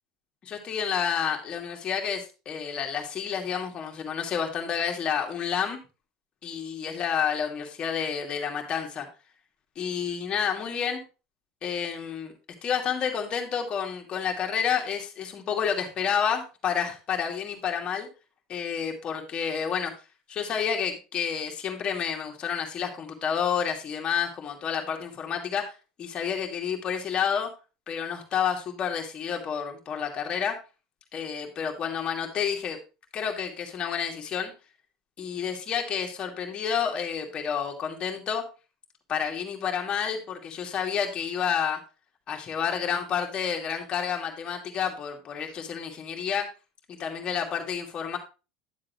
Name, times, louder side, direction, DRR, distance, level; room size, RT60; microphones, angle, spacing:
voice 1, 0.4-5.8 6.4-9.1 9.8-11.0 11.6-12.3 12.6-18.1 18.5-19.9 20.3-27.5 27.9-30.6 31.1-32.8 33.1-34.5 35.2-38.4 39.1-41.8 42.3-46.5 46.9-48.2, left 7 dB, 40° left, 2 dB, 2.4 m, -29 dB
11.0 x 7.5 x 3.1 m, 0.31 s
hypercardioid pair, 80°, 3 cm